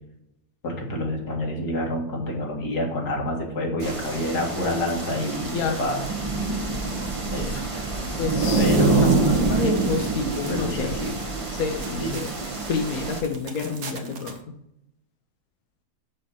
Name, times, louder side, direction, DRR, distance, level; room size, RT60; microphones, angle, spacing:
voice 1, 0.6-6.0 7.3-7.7 8.6-9.4 10.5-11.2 11.9-12.2, left 1 dB, 85° left, 0 dB, 2.4 m, -27 dB
sound 1, 3.8-13.2, right 3 dB, 25° right, 1.0 m, -26 dB
voice 2, 8.2-11.1 11.5-12.3 12.7-14.5, left 4 dB, 70° left, 3 dB, 1.2 m, -29 dB
sound 2, 8.4-14.4, right 4 dB, 70° right, 1.5 m, -41 dB
6.3 x 5.5 x 6.2 m, 0.81 s
omnidirectional pair, 1.6 m